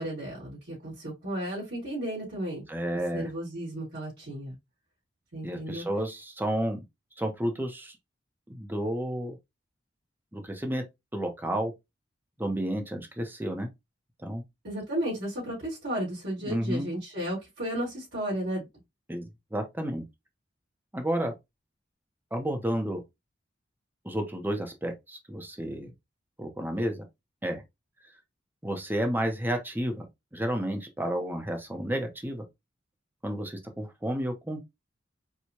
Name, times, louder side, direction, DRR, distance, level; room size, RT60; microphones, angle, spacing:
voice 1, 0.0-2.7 3.1-4.6 5.3-5.9 14.6-18.7, right 1 dB, 80° right, 2.3 m, -33 dB
voice 2, 2.7-3.3 5.4-6.8 7.2-7.9 8.5-9.4 10.3-10.8 11.1-11.7 12.4-13.7 14.2-14.4 16.4-16.9 19.1-19.2 19.5-20.1 20.9-21.3 22.3-23.0 24.0-25.9 26.4-27.0 27.4-27.6 28.6-30.1 30.3-32.4 33.2-34.6, right 1 dB, 10° right, 0.7 m, -31 dB
4.6 x 2.3 x 2.8 m
head